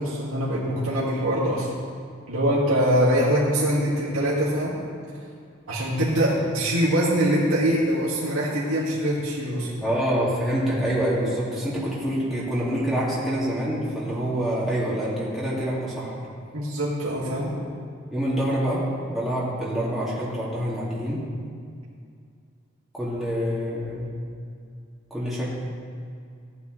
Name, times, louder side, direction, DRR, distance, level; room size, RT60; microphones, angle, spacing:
voice 1, 0.0-1.7 2.3-4.8 5.7-9.7 16.5-17.5, equal, 80° right, -8 dB, 2.1 m, -23 dB
voice 2, 9.8-16.2 18.1-21.3 22.9-24.1 25.1-25.5, equal, ahead, -9 dB, 2.2 m, -26 dB
15.0 x 10.5 x 3.2 m, 2.3 s
head